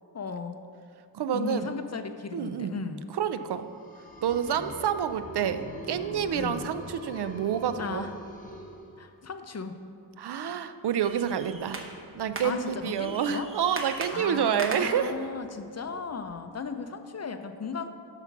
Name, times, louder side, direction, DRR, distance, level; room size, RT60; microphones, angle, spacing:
voice 1, 0.1-0.6 1.3-3.1 4.5-4.8 6.3-6.7 7.8-8.1 9.0-9.8 12.4-13.5 14.1-17.9, left 5 dB, 40° left, 8 dB, 0.5 m, -36 dB
voice 2, 1.1-1.8 2.3-3.7 4.2-8.1 10.2-11.9 12.2-15.1, right 8 dB, 65° right, 11 dB, 0.5 m, -28 dB
sound 1, 3.6-9.4, equal, 20° left, 1.1 m, -44 dB
sound 2, 11.0-16.5, right 2 dB, 30° right, 0.9 m, -40 dB
8.0 x 5.9 x 5.9 m, 2.4 s
wide cardioid pair, 115°, 43 cm